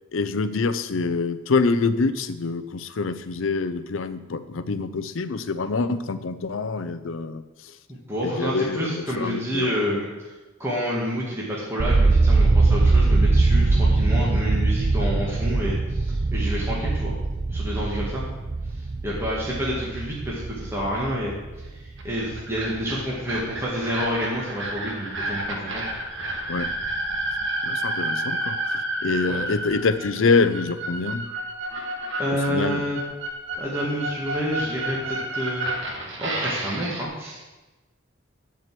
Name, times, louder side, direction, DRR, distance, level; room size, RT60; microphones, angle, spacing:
voice 1, 0.1-7.4 8.2-9.7 26.5-26.7 27.7-31.3 32.3-32.8, left 4 dB, 65° left, 13 dB, 0.6 m, -25 dB
voice 2, 7.9-10.3 10.6-17.1 17.5-18.2 19.0-25.8 29.2-29.4 32.2-33.0 33.6-35.7 36.2-37.4, equal, 10° right, -6 dB, 1.8 m, -29 dB
sound 1, 11.8-21.8 22.1-22.8, right 3 dB, 35° right, 0.5 m, -21 dB
sound 2, 22.0-37.0, right 1 dB, 60° right, 1.6 m, -30 dB
12.0 x 4.8 x 7.5 m, 1.1 s
head